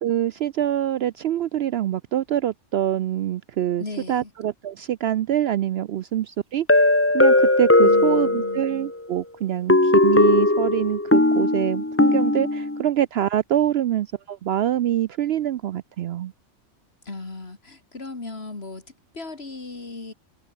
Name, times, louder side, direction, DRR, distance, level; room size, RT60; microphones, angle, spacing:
voice 1, 0.0-6.7 7.1-16.3, right 11 dB, 65° right, 0.7 m, -25 dB
voice 2, 3.8-4.3 7.8-8.7 17.0-20.1, left 3 dB, 50° left, 3.2 m, -36 dB
sound 1, 6.7-8.9 9.7-12.8, left 2 dB, 10° left, 0.9 m, -18 dB
omnidirectional pair, 1.3 m